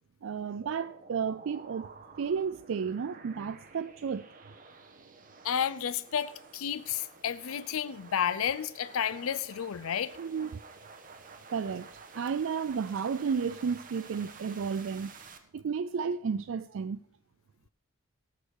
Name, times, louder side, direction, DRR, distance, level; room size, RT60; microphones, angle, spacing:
voice 1, 0.2-4.3 10.2-10.6 11.5-15.1 15.5-17.0, right 6 dB, 75° right, 0.4 m, -33 dB
sound 1, 0.6-15.4, right 4 dB, 40° right, 1.2 m, -51 dB
voice 2, 5.4-10.1, left 8 dB, 90° left, 0.5 m, -31 dB
17.5 x 6.7 x 4.7 m
head